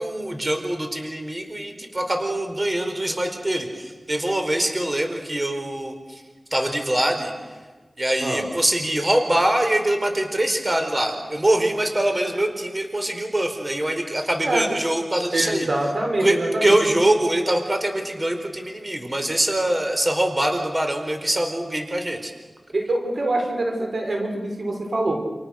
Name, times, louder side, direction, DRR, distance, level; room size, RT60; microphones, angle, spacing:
voice 1, 0.0-6.2 6.5-7.3 8.0-15.7 16.2-22.3, right 1 dB, 30° right, 5 dB, 4.6 m, -23 dB
voice 2, 15.3-16.7 22.7-25.1, right 2 dB, 70° right, 2 dB, 5.3 m, -24 dB
29.5 x 29.0 x 6.6 m, 1.3 s
cardioid pair, 45°, 0 cm